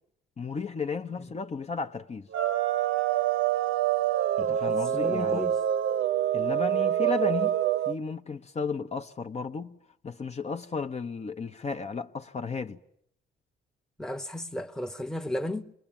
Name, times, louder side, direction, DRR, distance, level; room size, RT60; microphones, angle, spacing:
voice 1, 0.4-2.3 4.4-5.4 6.3-7.5 7.9-9.7 10.0-12.8, left 5 dB, 35° left, 0.9 m, -34 dB
sound 1, 2.3-8.0, right 11 dB, 80° right, 1.0 m, -26 dB
voice 2, 4.4-5.6 14.0-15.7, left 1 dB, 5° left, 1.0 m, -34 dB
27.0 x 20.5 x 8.9 m
cardioid pair, 90°, 20 cm